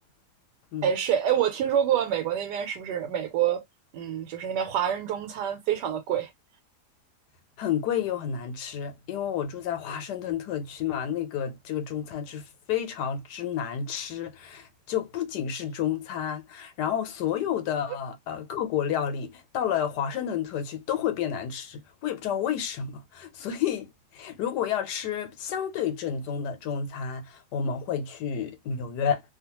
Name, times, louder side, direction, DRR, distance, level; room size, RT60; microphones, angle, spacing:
voice 1, 0.8-3.6 3.9-6.3, right 9 dB, 85° right, 1.3 m, -27 dB
voice 2, 7.6-29.2, left 8 dB, 80° left, 1.3 m, -30 dB
2.7 x 2.3 x 2.9 m
omnidirectional pair, 1.8 m